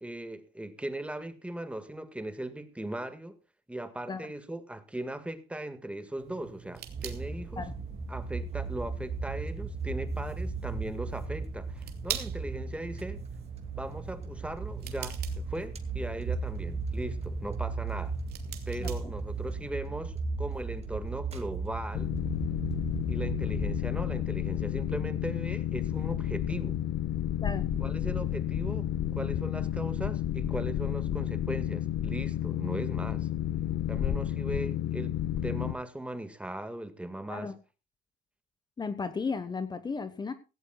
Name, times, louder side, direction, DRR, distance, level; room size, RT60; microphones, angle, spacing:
voice 1, 0.0-3.4 3.7-7.7 8.1-13.2 13.7-18.1 18.7-22.2 23.1-26.8 27.8-33.3 33.9-35.2 35.4-37.5, right 1 dB, 5° right, 1.8 m, -38 dB
sound 1, 6.2-19.7, right 10 dB, 70° right, 2.6 m, -45 dB
sound 2, 6.9-23.8, right 4 dB, 40° right, 2.3 m, -36 dB
Boat Water vehicle, 21.9-35.7, left 11 dB, 70° left, 1.4 m, -31 dB
voice 2, 38.8-40.3, left 4 dB, 25° left, 1.2 m, -34 dB
17.0 x 16.5 x 2.4 m
cardioid pair, 110°, 17 cm